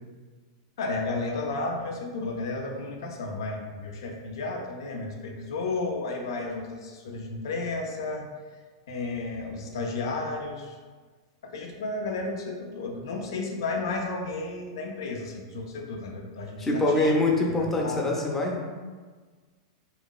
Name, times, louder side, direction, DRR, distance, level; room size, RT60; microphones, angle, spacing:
voice 1, 0.8-8.3 8.9-10.8 11.4-17.2 17.6-18.1, left 3 dB, 75° left, 1 dB, 0.5 m, -33 dB
voice 2, 16.6-18.6, left 2 dB, 15° left, -2 dB, 0.6 m, -24 dB
3.0 x 2.8 x 2.3 m, 1.4 s
hypercardioid pair, 115°, 2 cm